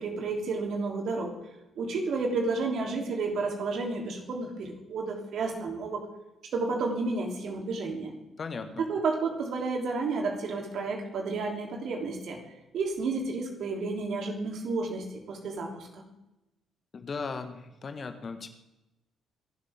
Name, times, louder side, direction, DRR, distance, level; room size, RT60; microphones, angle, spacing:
voice 1, 0.0-1.3 1.8-6.0 6.4-8.1 8.9-12.4 12.7-16.0, right 3 dB, 50° right, 2 dB, 3.2 m, -31 dB
voice 2, 8.4-8.9 16.9-18.5, left 4 dB, 40° left, 8 dB, 1.6 m, -37 dB
27.0 x 12.0 x 3.7 m, 0.95 s
figure-of-eight pair, 45°, 0 cm